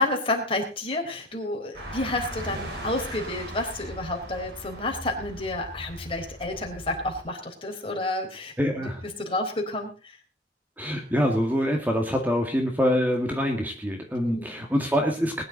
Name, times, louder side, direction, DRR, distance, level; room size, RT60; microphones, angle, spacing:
voice 1, 0.0-8.9 9.2-9.9 14.2-14.5, left 2 dB, 35° left, 3 dB, 4.1 m, -30 dB
sound 1, 1.7-7.2, right 1 dB, 70° right, 5.3 m, -38 dB
voice 2, 8.6-9.0 10.8-15.4, equal, 10° right, 2 dB, 2.1 m, -25 dB
21.0 x 10.5 x 4.0 m, 0.33 s
head